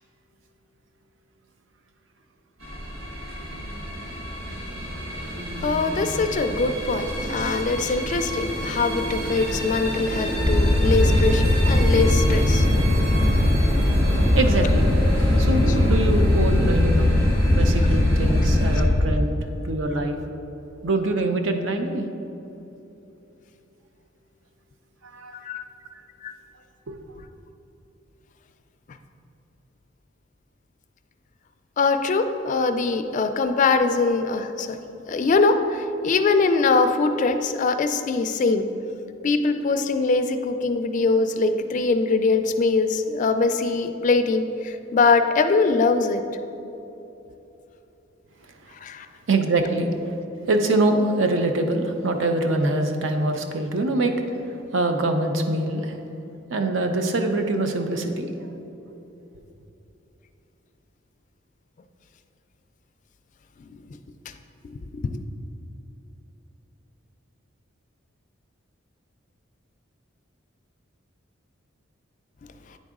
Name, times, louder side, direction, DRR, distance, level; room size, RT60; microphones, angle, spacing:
sound 1, 2.6-18.8, equal, 85° right, 1.3 m, -29 dB
voice 1, 5.6-12.7 15.1-15.2 15.7-15.8 25.3-25.6 26.2-26.3 31.8-34.8 35.1-38.7 39.2-46.2 48.8-49.1 63.6-63.8 64.6-65.2, left 4 dB, 40° left, 8 dB, 0.3 m, -22 dB
sound 2, 10.4-19.1, left 1 dB, 15° right, 0.9 m, -20 dB
voice 2, 14.3-14.9 15.4-17.1 17.5-19.4 19.6-20.2 20.8-22.0 25.1-25.4 26.9-27.0 49.3-49.9 50.5-54.1 54.7-56.0 56.5-58.5, right 2 dB, 70° right, 5 dB, 0.6 m, -24 dB
9.2 x 3.9 x 3.6 m, 3.0 s
head